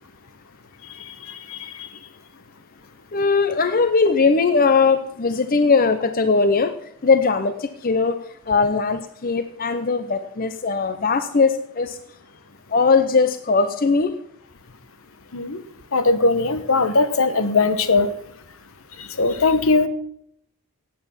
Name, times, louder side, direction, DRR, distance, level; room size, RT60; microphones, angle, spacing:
voice 1, 1.0-1.9 15.3-15.6 15.9-18.1 19.0-19.9, left 3 dB, 70° left, 12 dB, 1.1 m, -20 dB
voice 2, 3.1-6.7 7.0-8.2 8.5-12.0 12.7-14.1, left 4 dB, 40° left, 10 dB, 0.7 m, -19 dB
16.5 x 9.0 x 5.8 m, 0.70 s
head